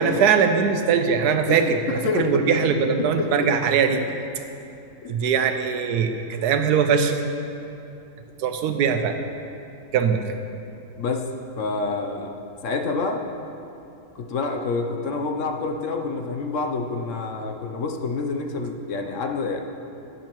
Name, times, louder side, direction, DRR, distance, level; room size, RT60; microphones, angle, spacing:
voice 1, 0.0-4.0 5.1-7.1 8.4-9.1 9.9-10.2, right 6 dB, 85° right, 7 dB, 1.2 m, -21 dB
voice 2, 1.5-2.8 3.2-3.3 5.0-5.1 11.0-12.3 12.6-13.2 14.1-19.6, left 3 dB, 60° left, 3 dB, 1.0 m, -27 dB
19.0 x 6.7 x 3.0 m, 2.7 s
omnidirectional pair, 1.7 m